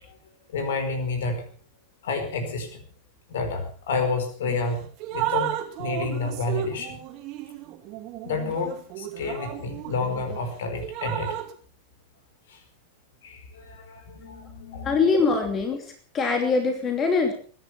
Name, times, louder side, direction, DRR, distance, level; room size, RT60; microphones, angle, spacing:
voice 1, 0.5-1.4 2.0-2.8 3.3-4.8 5.1-7.0 8.2-11.4 12.5-12.6 13.2-15.0, left 3 dB, 60° left, 7 dB, 4.7 m, -30 dB
Drip, 4.4-4.6 5.0-10.4 10.8-11.5, right 12 dB, 40° right, 2.5 m, -33 dB
voice 2, 14.8-17.3, left 4 dB, 25° left, 5 dB, 2.9 m, -23 dB
22.0 x 10.5 x 5.9 m, 0.43 s
figure-of-eight pair, 90°, 0 cm